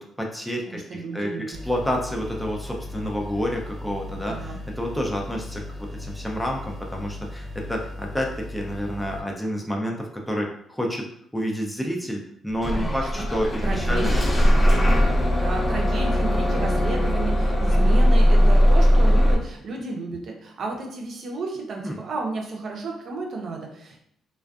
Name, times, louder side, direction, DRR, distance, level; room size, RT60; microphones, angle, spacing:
voice 1, 0.0-11.1 11.3-14.1 14.6-14.8 17.7-18.0 21.8-22.0, equal, 5° left, -1 dB, 0.4 m, -29 dB
voice 2, 0.7-1.6 4.2-4.6 12.7-13.3 13.6-15.1 15.4-24.0, right 3 dB, 60° right, 1 dB, 0.6 m, -32 dB
sound 1, 1.5-9.2, left 2 dB, 10° right, 0.9 m, -37 dB
Bus / Engine starting, 12.6-19.3, equal, 30° left, 0.8 m, -19 dB
2.4 x 2.2 x 2.3 m, 0.69 s
cardioid pair, 90°, 0 cm